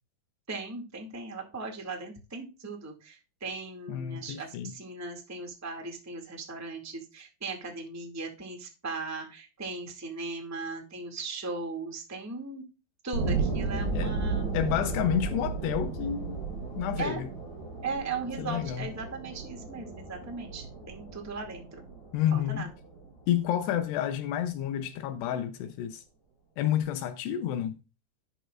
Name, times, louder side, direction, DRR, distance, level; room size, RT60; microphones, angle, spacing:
voice 1, 0.5-12.6 13.0-14.6 17.0-17.2 17.8-21.8 22.3-22.7, right 3 dB, 15° right, 0.6 m, -38 dB
voice 2, 3.9-4.7 13.9-14.1 14.5-16.5 16.8-17.3 18.4-18.9 22.1-22.7 23.3-26.0 26.6-27.8, left 10 dB, 85° left, 2.9 m, -30 dB
sound 1, 13.1-23.9, right 4 dB, 45° right, 7.2 m, -34 dB
12.0 x 8.6 x 2.4 m
omnidirectional pair, 4.8 m